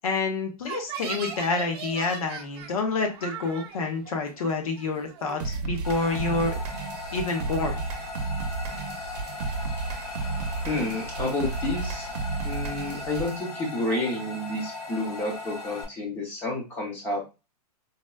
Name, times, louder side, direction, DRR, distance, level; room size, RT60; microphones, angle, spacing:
voice 1, 0.0-6.6 7.1-7.8, left 3 dB, 65° left, 4 dB, 0.9 m, -28 dB
sound 1, 0.6-7.2 7.5-8.3 8.6-9.1 9.4-10.6 10.9-12.6, right 7 dB, 40° right, 0.7 m, -41 dB
sound 2, 5.4-13.4, right 4 dB, 85° right, 0.6 m, -32 dB
sound 3, 5.8-15.8, left 3 dB, 85° left, 1.2 m, -38 dB
voice 2, 10.6-12.1 12.4-17.2, left 2 dB, 10° left, -1 dB, 0.5 m, -30 dB
4.0 x 2.2 x 2.2 m, 0.28 s
hypercardioid pair, 175°, 20 cm